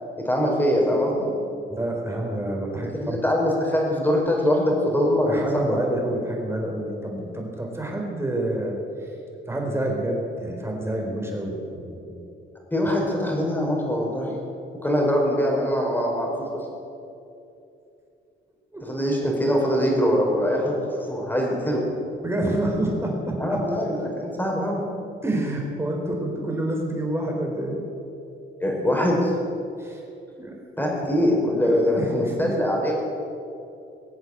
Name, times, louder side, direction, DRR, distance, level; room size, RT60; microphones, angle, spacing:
voice 1, 0.2-1.3 2.9-5.8 12.7-14.4 14.8-16.7 18.8-21.8 23.4-24.8 28.6-29.3 30.8-32.9, equal, 10° left, -1 dB, 4.9 m, -23 dB
voice 2, 1.7-3.2 5.3-9.1 9.5-12.2 18.7-18.8 22.2-23.6 25.2-27.8 29.8-30.0 30.4-30.6 31.6-32.5, right 1 dB, 10° right, 0 dB, 4.3 m, -28 dB
21.0 x 8.0 x 8.0 m, 2.7 s
cardioid pair, 90°, 20 cm